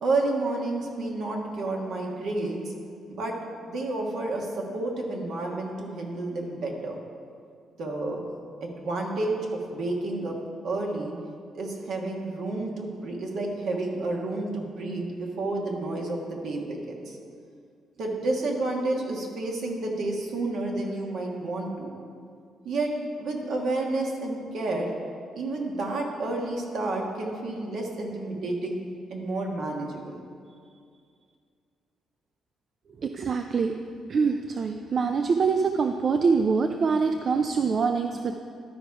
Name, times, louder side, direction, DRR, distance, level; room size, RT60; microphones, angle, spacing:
voice 1, 0.0-2.7 3.1-3.3 3.6-7.0 7.8-8.3 8.6-10.4 10.6-11.1 11.5-17.2 18.0-21.9 22.6-22.9 23.2-24.9 25.3-28.8 29.1-30.2, right 2 dB, 70° right, 0 dB, 1.5 m, -30 dB
voice 2, 33.0-33.7 34.1-38.4, right 5 dB, 50° right, 6 dB, 0.4 m, -24 dB
12.0 x 4.8 x 4.7 m, 2.3 s
cardioid pair, 90°, 0 cm